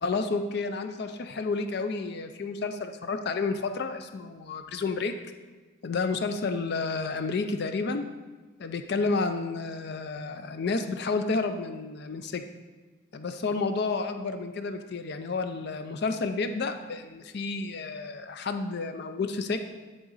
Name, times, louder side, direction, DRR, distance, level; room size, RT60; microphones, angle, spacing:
voice 1, 0.0-5.1 5.8-8.1 8.6-12.4 13.1-19.6, left 4 dB, 50° left, 8 dB, 0.4 m, -30 dB
11.0 x 3.8 x 4.0 m, 1.3 s
head